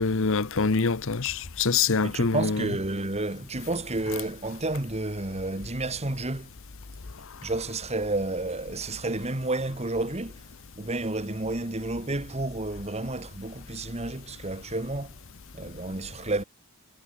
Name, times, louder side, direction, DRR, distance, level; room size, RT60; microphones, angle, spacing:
voice 1, 0.0-2.7, left 4 dB, 60° left, 0.9 m, -25 dB
voice 2, 2.0-6.5 7.4-10.4 10.8-15.2 15.5-16.4, right 2 dB, 30° right, 1.8 m, -31 dB
head